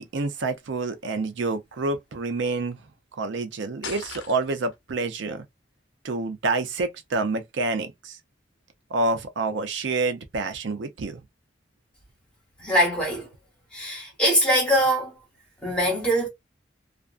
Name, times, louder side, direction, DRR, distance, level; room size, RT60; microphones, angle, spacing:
voice 1, 0.0-2.8 3.2-5.4 6.0-8.2 8.9-11.2, right 3 dB, 75° right, 0.5 m, -28 dB
sound 1, 3.8-4.8, left 6 dB, 85° left, 0.6 m, -38 dB
voice 2, 12.6-13.3 13.7-15.1 15.6-16.3, equal, 5° left, 1.1 m, -22 dB
2.4 x 2.2 x 2.3 m
head